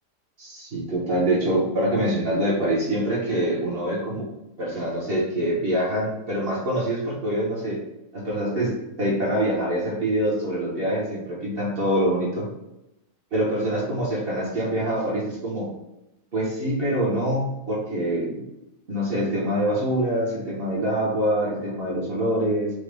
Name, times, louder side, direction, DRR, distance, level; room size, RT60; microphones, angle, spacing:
voice 1, 0.4-4.3 4.6-7.8 8.1-8.7 9.0-12.5 13.3-15.7 16.3-18.4 18.9-22.7, right 1 dB, 40° right, -5 dB, 1.1 m, -25 dB
5.1 x 2.4 x 3.3 m, 0.91 s
omnidirectional pair, 1.9 m